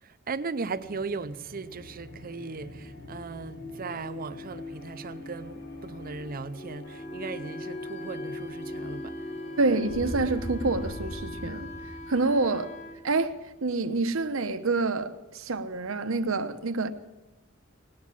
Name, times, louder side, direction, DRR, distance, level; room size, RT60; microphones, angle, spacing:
voice 1, 0.0-9.4, right 4 dB, 45° right, 0.6 m, -37 dB
sound 1, 0.7-14.1, left 1 dB, 55° left, 3.1 m, -41 dB
Wind instrument woodwind instrument, 6.8-13.0, equal, 70° left, 2.7 m, -41 dB
voice 2, 9.6-11.7 12.1-12.7 13.0-13.4 13.6-16.9, right 3 dB, 75° right, 0.9 m, -27 dB
18.5 x 9.6 x 7.3 m
head